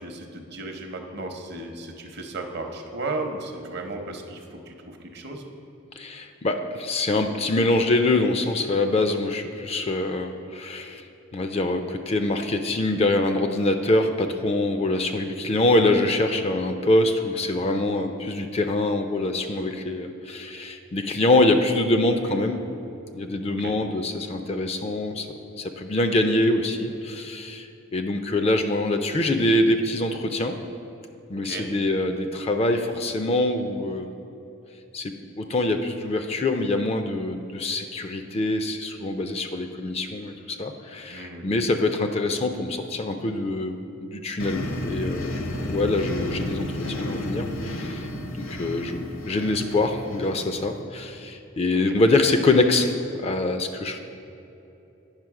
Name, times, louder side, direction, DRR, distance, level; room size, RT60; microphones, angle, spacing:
voice 1, 0.0-5.5 22.3-22.5 23.5-23.7 31.3-31.7 41.1-41.5 51.7-52.0, right 2 dB, 50° right, 3 dB, 0.8 m, -35 dB
voice 2, 6.0-11.0 11.3-22.6 23.1-25.3 25.6-27.7 27.9-30.6 31.3-34.1 34.9-48.1 48.4-52.9 53.2-54.0, left 2 dB, 30° left, 7 dB, 0.4 m, -24 dB
sound 1, 44.4-50.8, left 1 dB, 70° left, 0.8 m, -32 dB
8.9 x 5.7 x 4.8 m, 2.9 s
head